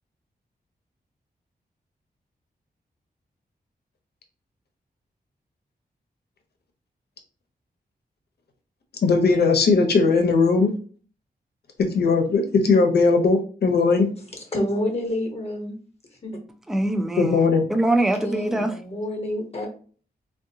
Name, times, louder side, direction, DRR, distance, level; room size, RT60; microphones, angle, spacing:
voice 1, 9.0-10.7 11.9-14.1 17.2-17.6, left 4 dB, 85° left, 0.7 m, -18 dB
voice 2, 14.5-15.8 16.2-16.4 18.2-19.7, left 1 dB, 40° left, 0.8 m, -28 dB
voice 3, 16.7-18.7, right 1 dB, ahead, 0.3 m, -23 dB
3.6 x 2.4 x 2.6 m
wide cardioid pair, 150°, 16 cm